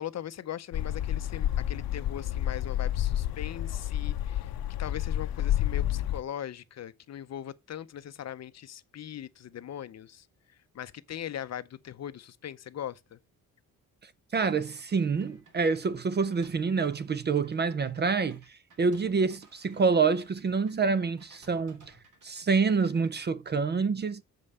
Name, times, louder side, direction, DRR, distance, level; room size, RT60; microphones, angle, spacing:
voice 1, 0.0-4.5 4.8-10.3 10.7-13.2, left 10 dB, 50° left, 0.6 m, -40 dB
sound 1, 0.7-6.2, left 12 dB, 90° left, 0.7 m, -30 dB
voice 2, 14.3-18.4 18.8-21.8 22.2-24.2, right 5 dB, 30° right, 0.5 m, -27 dB
sound 2, 14.3-20.7 21.2-22.4 22.7-23.3, right 3 dB, 60° right, 3.3 m, -59 dB
7.4 x 5.4 x 6.6 m
wide cardioid pair, 145°, 35 cm